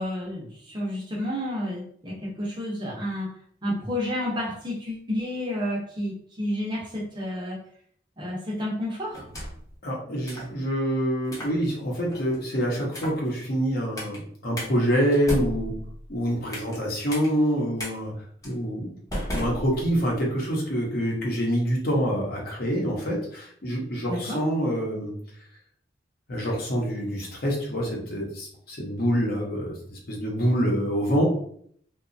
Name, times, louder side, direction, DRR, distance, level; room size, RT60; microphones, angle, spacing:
voice 1, 0.0-3.3 3.6-7.6 8.2-9.3 24.1-24.4, left 1 dB, 25° right, -3 dB, 0.6 m, -30 dB
sound 1, 9.1-9.7 10.3-10.5 11.2-11.6 12.1-12.4 12.9-13.3 14.0-14.2 14.6-14.7 15.1-16.8 17.1-17.3 17.8-17.9 18.4-18.6 19.1-20.2, equal, 20° left, 0.7 m, -34 dB
voice 2, 9.8-15.8 16.1-18.1 18.4-18.9 19.3-25.1 26.3-31.2, equal, 55° left, -2 dB, 0.8 m, -26 dB
2.8 x 2.2 x 2.6 m, 0.62 s
head